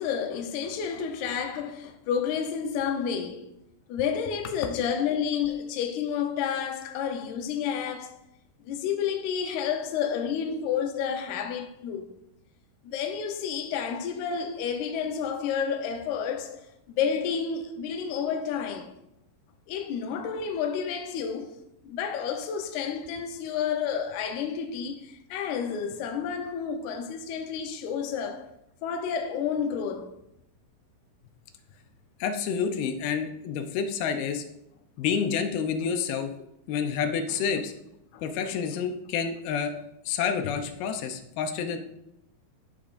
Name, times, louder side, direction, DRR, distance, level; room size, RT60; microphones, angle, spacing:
voice 1, 0.0-3.5 3.9-8.2 8.6-12.2 12.8-19.0 19.7-21.6 21.8-28.5 28.8-30.1 38.1-38.2, left 7 dB, 70° left, 1.9 m, -30 dB
voice 2, 32.2-34.4 35.0-36.3 36.7-37.7 38.2-39.7 40.1-41.8, left 6 dB, 90° left, 2.8 m, -28 dB
14.0 x 6.5 x 2.6 m
omnidirectional pair, 4.3 m